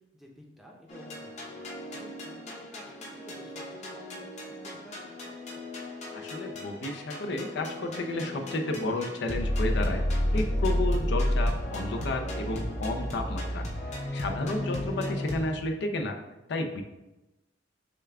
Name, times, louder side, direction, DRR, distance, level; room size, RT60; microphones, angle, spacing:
voice 1, 0.1-5.0, equal, ahead, -1 dB, 0.7 m, -51 dB
sound 1, 0.9-15.5, left 1 dB, 40° left, 0.9 m, -32 dB
voice 2, 6.1-10.0 10.3-13.6 14.1-16.2 16.5-16.8, left 2 dB, 65° left, 5 dB, 0.5 m, -32 dB
6.7 x 2.3 x 3.4 m, 0.99 s
head